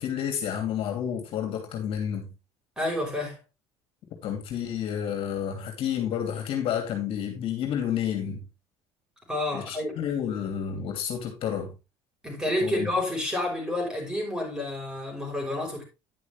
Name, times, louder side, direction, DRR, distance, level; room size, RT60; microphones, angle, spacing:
voice 1, 0.0-2.3 4.2-8.5 9.5-11.7 12.6-12.9, left 9 dB, 60° left, 2.8 m, -30 dB
voice 2, 2.8-3.4 9.3-9.9 12.2-15.8, left 1 dB, 5° right, 5.6 m, -29 dB
10.5 x 6.4 x 3.5 m
cardioid pair, 110°, 11 cm